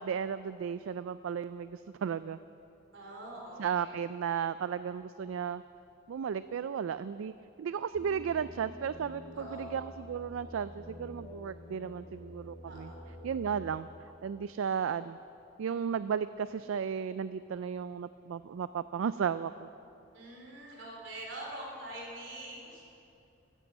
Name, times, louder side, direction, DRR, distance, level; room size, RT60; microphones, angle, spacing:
voice 1, 0.0-2.4 3.6-5.6 6.1-7.3 7.6-12.9 13.2-13.9 14.2-15.2 15.6-19.7, right 7 dB, 85° right, 14 dB, 0.3 m, -34 dB
voice 2, 2.9-4.0 9.3-9.8 12.6-13.2 20.1-22.8, right 1 dB, 65° right, -2 dB, 4.1 m, -45 dB
sound 1, 7.9-13.8, left 1 dB, 35° left, 1.6 m, -48 dB
14.0 x 10.0 x 8.3 m, 2.7 s
head